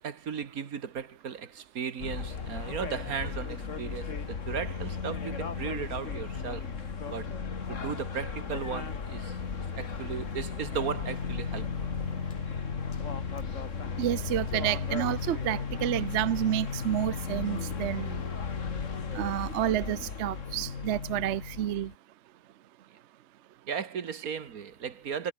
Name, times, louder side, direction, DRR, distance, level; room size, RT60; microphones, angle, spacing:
voice 1, 0.0-6.7 7.1-7.3 7.7-9.4 9.7-11.7 23.7-25.3, right 7 dB, 85° right, 1.9 m, -36 dB
sound 1, 2.0-21.9, left 5 dB, 60° left, 2.1 m, -35 dB
voice 2, 14.0-18.2 19.1-21.9, right 12 dB, 60° right, 0.9 m, -30 dB
omnidirectional pair, 1.5 m